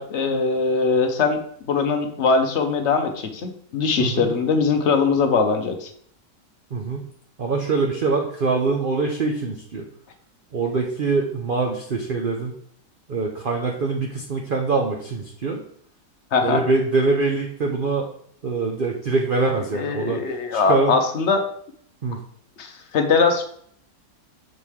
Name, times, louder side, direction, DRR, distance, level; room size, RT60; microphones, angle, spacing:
voice 1, 0.0-1.4 1.7-5.9 16.3-16.6 19.7-21.4 22.6-23.4, left 4 dB, 55° left, 5 dB, 0.9 m, -21 dB
voice 2, 6.7-7.1 7.4-9.8 10.5-12.5 13.1-15.6 16.4-18.1 18.4-20.2 20.5-21.0 22.0-22.2, right 3 dB, 60° right, 1 dB, 0.5 m, -24 dB
6.4 x 4.7 x 3.5 m, 0.64 s
omnidirectional pair, 1.8 m